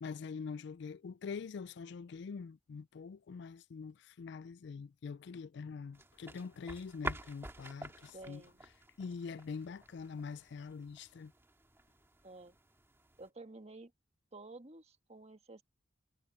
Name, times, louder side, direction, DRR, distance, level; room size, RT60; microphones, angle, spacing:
voice 1, 0.0-8.4 9.0-11.3, left 5 dB, 60° left, 0.3 m, -44 dB
sound 1, 5.9-13.3, right 2 dB, 15° right, 2.0 m, -48 dB
voice 2, 8.1-8.6 12.2-12.6 13.2-13.9 14.3-15.6, right 2 dB, 35° right, 1.5 m, -51 dB
head